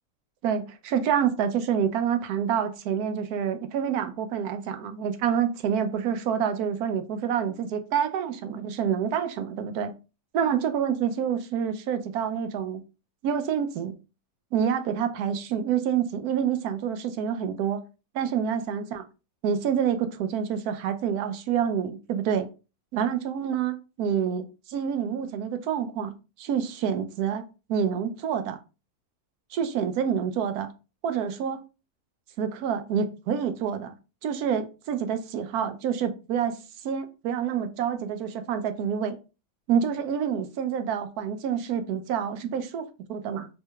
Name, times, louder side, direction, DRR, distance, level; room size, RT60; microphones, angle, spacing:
voice 1, 0.4-9.9 10.3-12.8 13.2-14.0 14.5-17.8 18.1-19.0 19.4-22.5 22.9-26.1 26.4-28.6 29.5-30.7 31.0-31.6 32.4-33.9 34.2-39.2 39.7-43.5, right 8 dB, 90° right, 1.1 m, -27 dB
4.5 x 3.2 x 2.2 m
omnidirectional pair, 1.6 m